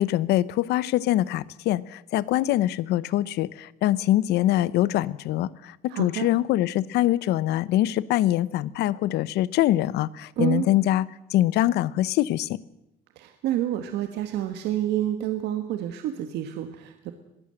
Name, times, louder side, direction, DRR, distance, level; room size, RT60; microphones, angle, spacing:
voice 1, 0.0-12.6, left 14 dB, 80° left, 20 dB, 0.8 m, -24 dB
voice 2, 5.9-6.3 10.4-10.7 13.1-17.1, right 12 dB, 85° right, 7 dB, 1.6 m, -28 dB
22.0 x 16.0 x 7.7 m, 0.85 s
cardioid pair, 110°, 17 cm